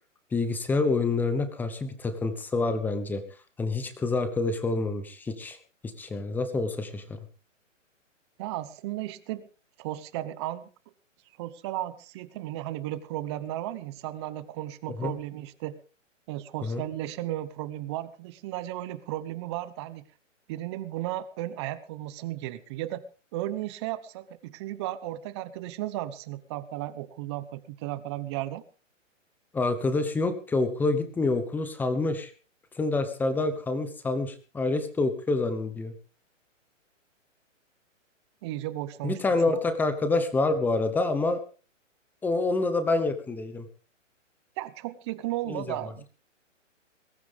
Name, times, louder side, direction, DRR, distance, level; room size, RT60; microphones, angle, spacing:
voice 1, 0.3-3.2 3.6-5.6 5.8-7.2 15.0-15.1 16.6-16.8 29.5-32.3 32.7-35.9 39.0-41.4 42.2-43.6 45.5-45.8, left 3 dB, 5° left, 10 dB, 1.0 m, -27 dB
voice 2, 8.4-9.5 9.8-10.6 11.4-15.8 16.3-20.0 20.5-23.0 23.3-28.6 38.4-39.6 44.6-46.1, right 14 dB, 20° right, 14 dB, 0.9 m, -35 dB
22.0 x 13.5 x 3.5 m, 0.36 s
hypercardioid pair, 155°, 39 cm